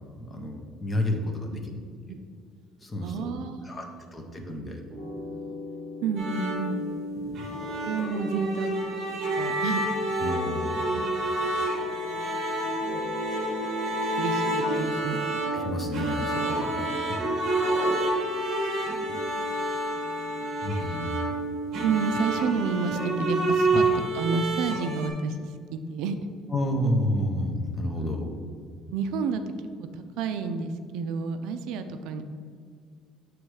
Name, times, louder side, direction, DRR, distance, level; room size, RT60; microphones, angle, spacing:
voice 1, 0.2-1.6 2.8-3.3 3.6-3.8 4.1-4.8 7.2-7.4 10.2-10.9 15.5-16.8 17.1-17.5 19.1-19.2 20.6-21.1 26.5-28.3, left 1 dB, 15° left, 3 dB, 0.6 m, -30 dB
voice 2, 1.5-2.2 3.0-4.7 5.1-5.6 6.0-6.8 7.4-7.5 7.8-9.9 10.9-11.1 11.4-11.5 11.8-13.4 14.2-15.3 16.9-17.8 19.3-20.7 21.8-23.9 24.1-26.2 27.9-28.1 28.9-32.2, right 5 dB, 70° right, 8 dB, 0.4 m, -32 dB
sound 1, 4.4-4.6 4.9-7.2 7.5-9.9 10.2-12.5 12.8-15.1 15.5-17.8, left 2 dB, 40° left, 1.6 m, -41 dB
sound 2, 6.2-25.1, right 1 dB, 45° right, 1.1 m, -28 dB
sound 3, 11.2-11.3 12.2-12.6 13.5-14.0 14.6-15.3 15.8-16.6 16.9-18.0, left 1 dB, 75° left, 1.2 m, -44 dB
7.7 x 3.2 x 4.7 m, 2.1 s
cardioid pair, 175°, 0 cm